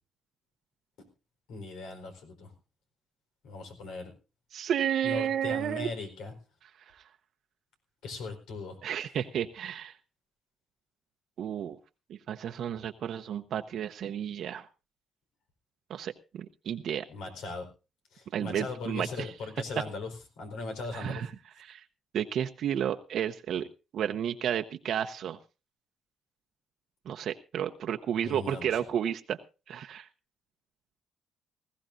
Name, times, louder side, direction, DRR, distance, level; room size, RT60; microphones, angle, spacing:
voice 1, 1.5-2.5 3.4-4.1 5.0-6.3 8.0-8.8 17.1-17.7 18.1-21.3 28.2-28.8, left 3 dB, 85° left, 5 dB, 4.4 m, -39 dB
voice 2, 4.5-5.9 8.8-9.9 11.4-11.8 12.1-14.7 15.9-17.1 18.3-19.3 20.9-21.3 21.6-21.8 22.1-23.7 23.9-25.4 27.1-29.4 29.7-30.1, right 9 dB, 70° right, 6 dB, 0.8 m, -32 dB
19.5 x 15.5 x 2.6 m, 0.31 s
cardioid pair, 90°, 0 cm